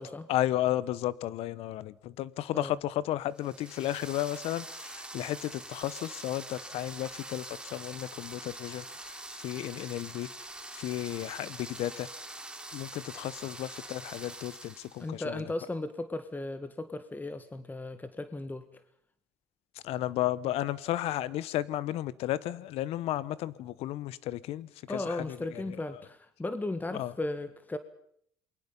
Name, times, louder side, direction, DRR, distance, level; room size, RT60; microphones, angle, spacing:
voice 1, 0.3-10.3 10.7-12.1 12.7-15.5 19.8-25.8 26.9-27.1, left 14 dB, 70° left, 1.1 m, -33 dB
sound 1, 3.4-15.1, right 2 dB, 10° right, 2.9 m, -44 dB
voice 2, 15.0-18.8 24.9-27.8, left 2 dB, 15° left, 1.7 m, -36 dB
28.0 x 22.5 x 5.5 m
supercardioid pair, 75°, 11 cm